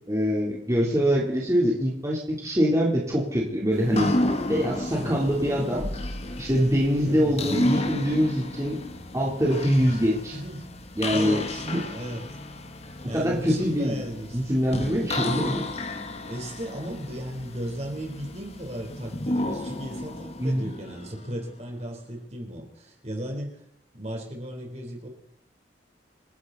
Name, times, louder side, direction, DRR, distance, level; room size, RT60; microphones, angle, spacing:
voice 1, 0.1-4.1 4.5-5.8 6.4-8.8 9.1-10.4 11.0-11.8 13.0-14.0 14.3-15.6 20.4-20.7, equal, 20° right, -4 dB, 3.4 m, -24 dB
voice 2, 0.8-1.1 5.0-6.0 7.0-7.4 10.3-10.7 11.1-12.2 13.0-14.4 16.3-23.6 23.9-25.1, equal, 40° right, 2 dB, 3.9 m, -36 dB
sound 1, 3.7-21.5, left 1 dB, 35° left, 1.3 m, -32 dB
28.0 x 11.0 x 4.1 m, 0.72 s
head